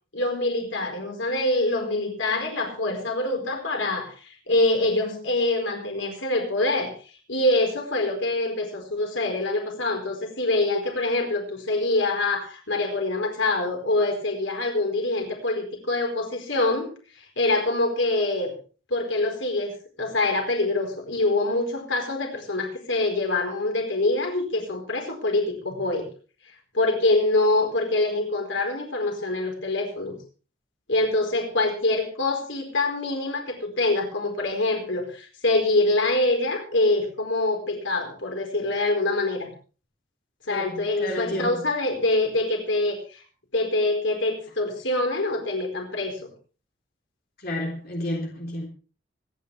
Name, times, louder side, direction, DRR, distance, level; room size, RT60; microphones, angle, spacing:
voice 1, 0.1-6.9 7.3-16.9 17.1-18.5 18.9-26.1 26.7-30.2 30.9-39.5 40.5-43.2 43.5-46.3, left 2 dB, 80° left, 3 dB, 4.6 m, -25 dB
voice 2, 40.5-41.5 47.4-48.7, left 1 dB, 50° left, -1 dB, 3.6 m, -31 dB
25.0 x 10.5 x 3.5 m, 0.38 s
head